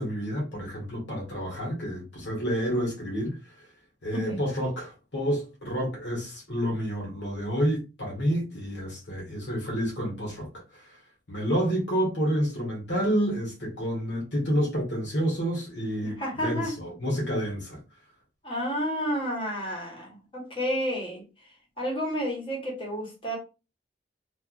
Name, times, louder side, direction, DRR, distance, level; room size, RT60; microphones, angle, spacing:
voice 1, 0.0-3.4 4.0-10.5 10.7-11.0 11.3-17.8, equal, 80° left, 1.6 m, -29 dB
voice 2, 16.0-16.8 18.4-21.2 21.8-23.4, equal, 30° left, 1.2 m, -30 dB
3.4 x 2.6 x 2.5 m
head